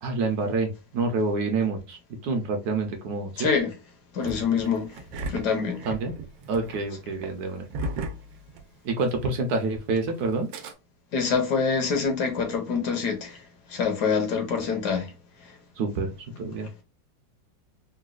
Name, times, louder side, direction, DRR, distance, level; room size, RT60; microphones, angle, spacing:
voice 1, 0.0-3.5 5.8-6.1 6.5-7.7 8.8-10.5 15.8-16.7, right 3 dB, 70° right, 1.0 m, -27 dB
voice 2, 3.4-3.7 4.1-4.9 5.3-5.8 11.1-13.4 13.7-15.1, left 5 dB, 70° left, 1.3 m, -25 dB
Engine starting, 4.2-9.1 9.4-9.5 10.3-10.7, right 2 dB, 85° right, 1.3 m, -36 dB
3.9 x 2.2 x 2.3 m
omnidirectional pair, 1.9 m